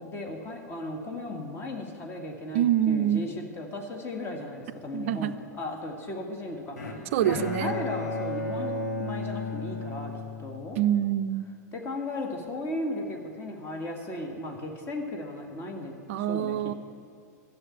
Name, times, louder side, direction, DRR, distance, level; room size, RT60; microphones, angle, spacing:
voice 1, 0.0-10.1 10.4-10.8 11.7-16.0 16.3-16.6, left 1 dB, 25° left, 2 dB, 1.9 m, -36 dB
voice 2, 2.5-3.2 4.9-5.3 7.1-7.8 10.8-11.5 16.1-16.7, right 11 dB, 50° right, 12 dB, 0.5 m, -25 dB
Bowed string instrument, 6.8-11.0, left 2 dB, 65° left, 1.8 m, -34 dB
13.0 x 7.8 x 8.6 m, 2.2 s
figure-of-eight pair, 95°, 9 cm